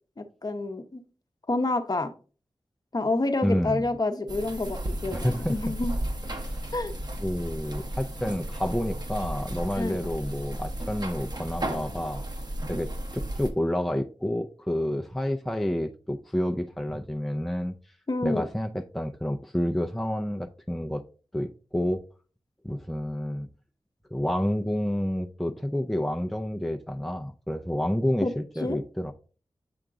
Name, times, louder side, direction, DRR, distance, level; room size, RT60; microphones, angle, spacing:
voice 1, 0.2-1.0 1.5-2.1 2.9-6.0 6.7-6.9 9.8-10.0 18.1-18.4 28.2-28.3 28.6-28.8, left 2 dB, 40° left, 0.8 m, -28 dB
voice 2, 3.4-3.8 5.1-5.7 6.4-6.7 7.2-12.2 12.7-17.7 18.2-21.0 21.3-22.0 22.6-23.5 24.1-29.1, equal, ahead, 0.5 m, -29 dB
sound 1, 4.3-13.5, right 1 dB, 45° right, 0.9 m, -34 dB
7.9 x 3.7 x 3.6 m
wide cardioid pair, 60°, 10 cm